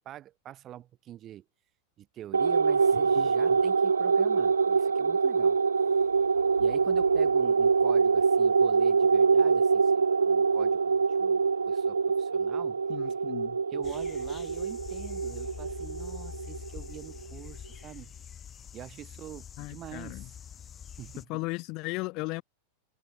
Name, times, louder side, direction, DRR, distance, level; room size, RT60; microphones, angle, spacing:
voice 1, 0.0-1.5 2.0-5.6 6.6-12.8 13.7-18.1 18.7-20.4 20.9-21.3, right 12 dB, 30° right, 2.0 m, -45 dB
sound 1, 2.3-17.1, right 5 dB, 75° right, 0.7 m, -25 dB
voice 2, 12.9-13.6 19.6-20.2 21.3-22.4, left 25 dB, 40° left, 1.0 m, -36 dB
sound 2, 13.8-21.2, left 8 dB, 25° left, 5.9 m, -45 dB
figure-of-eight pair, 90°, 0 cm